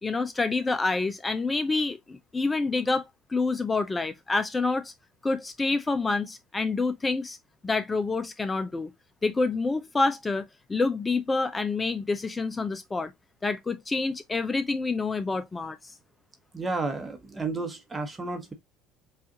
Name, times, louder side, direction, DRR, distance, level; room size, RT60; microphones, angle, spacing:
voice 1, 0.0-3.0 3.3-4.9 5.2-7.4 7.6-8.9 9.2-13.1 13.4-15.9, left 3 dB, 20° left, 0.5 m, -27 dB
voice 2, 16.5-18.5, right 3 dB, 20° right, 1.0 m, -32 dB
4.9 x 2.5 x 2.7 m
supercardioid pair, 90°, 0 cm